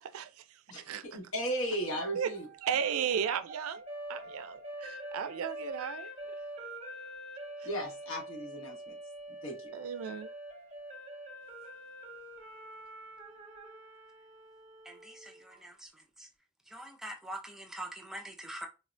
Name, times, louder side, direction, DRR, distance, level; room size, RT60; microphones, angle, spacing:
voice 1, 0.7-2.5 7.6-8.9 9.3-9.7, right 1 dB, 75° left, 1.2 m, -36 dB
sound 1, 1.5-15.6, right 1 dB, 35° right, 0.7 m, -46 dB
voice 2, 2.6-3.8 4.1-6.1 9.7-10.3, right 8 dB, 90° right, 0.4 m, -34 dB
voice 3, 14.9-15.9 16.2-16.3 16.7-18.7, right 1 dB, ahead, 0.3 m, -44 dB
3.8 x 2.1 x 2.5 m
head